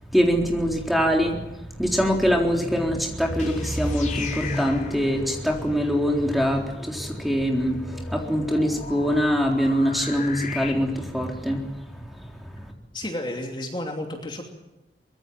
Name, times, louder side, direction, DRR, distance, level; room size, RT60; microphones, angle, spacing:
voice 1, 0.1-1.4 1.8-12.7, equal, ahead, 1 dB, 3.8 m, -24 dB
sound 1, 3.2-10.7, left 5 dB, 45° left, 4.1 m, -39 dB
voice 2, 12.9-14.4, left 1 dB, 25° left, 2 dB, 2.8 m, -31 dB
24.0 x 22.0 x 7.5 m, 1.0 s
head